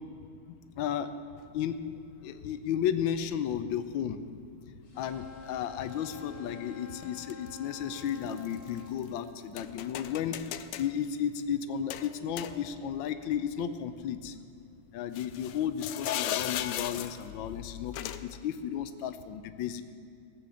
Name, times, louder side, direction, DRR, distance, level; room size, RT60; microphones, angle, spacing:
voice 1, 0.8-1.1 1.5-1.8 2.2-4.2 5.0-10.5 10.8-14.3 14.9-19.8, left 9 dB, 70° left, 10 dB, 1.4 m, -33 dB
sound 1, 1.4-1.5 2.5-2.6 3.5-3.8 7.0-7.5 7.9-9.1 9.6-10.9 11.9-13.0 13.3-13.4 15.1-17.3 17.9-18.4, left 12 dB, 85° left, 0.9 m, -37 dB
sound 2, 4.8-9.0, left 5 dB, 55° left, 2.7 m, -47 dB
16.0 x 8.0 x 7.0 m, 2.6 s
omnidirectional pair, 2.4 m